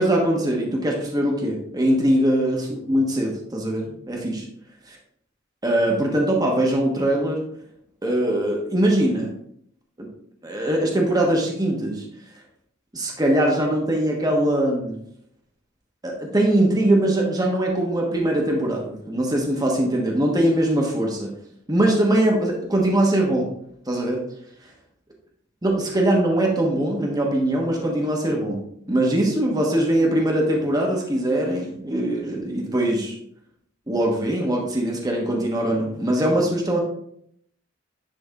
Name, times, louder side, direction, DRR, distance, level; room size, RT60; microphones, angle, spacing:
voice 1, 0.0-4.4 4.9-5.0 5.6-7.4 8.0-9.3 10.0-10.1 10.4-12.0 12.9-15.0 16.0-21.3 21.7-23.5 23.9-24.2 25.6-33.2 33.9-36.8, right 1 dB, 20° right, -1 dB, 1.1 m, -22 dB
10.5 x 3.5 x 3.7 m, 0.71 s
head